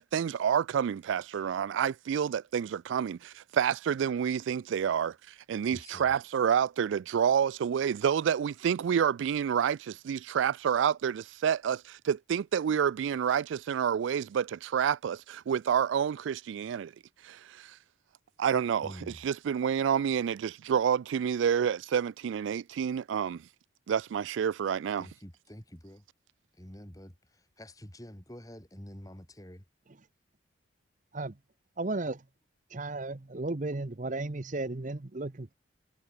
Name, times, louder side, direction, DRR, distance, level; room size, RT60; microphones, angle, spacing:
voice 1, 0.0-5.2 5.5-16.9 17.2-17.8 18.4-23.4 23.9-25.1, right 8 dB, 70° right, 0.3 m, -28 dB
voice 2, 5.6-6.1 18.8-19.2 25.0-26.0 26.6-29.6, equal, 15° left, 3.1 m, -47 dB
voice 3, 31.8-32.2 32.7-35.5, right 2 dB, 40° right, 0.8 m, -34 dB
head